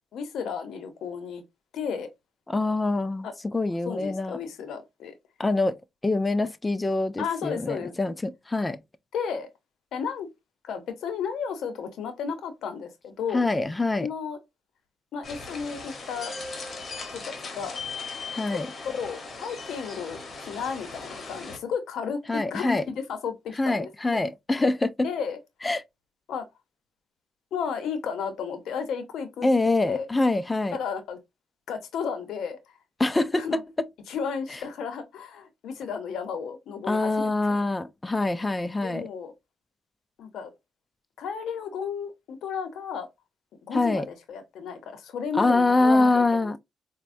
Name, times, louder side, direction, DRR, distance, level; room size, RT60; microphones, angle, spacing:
voice 1, 0.1-1.4 1.7-2.1 3.2-3.3 3.9-5.1 7.2-8.0 9.1-9.5 9.9-10.3 10.6-13.5 14.0-14.4 15.1-16.4 17.1-17.8 18.5-18.6 18.8-24.2 25.0-25.4 26.3-26.5 27.5-29.5 29.8-30.1 30.7-31.2 31.7-32.6 33.4-33.6 34.1-37.7 38.5-39.3 40.2-40.5 41.2-43.1 43.6-46.6, left 6 dB, 75° left, 0.7 m, -33 dB
voice 2, 2.5-4.4 5.4-5.8 6.0-8.8 13.3-14.1 18.3-18.7 22.3-22.9 23.6-25.1 25.6-25.8 29.4-30.8 33.0-33.6 36.9-39.1 43.7-44.1 45.4-46.6, left 2 dB, 20° left, 0.3 m, -24 dB
sound 1, 15.2-21.6, left 4 dB, 40° left, 0.9 m, -38 dB
4.1 x 2.1 x 2.5 m
cardioid pair, 90°, 0 cm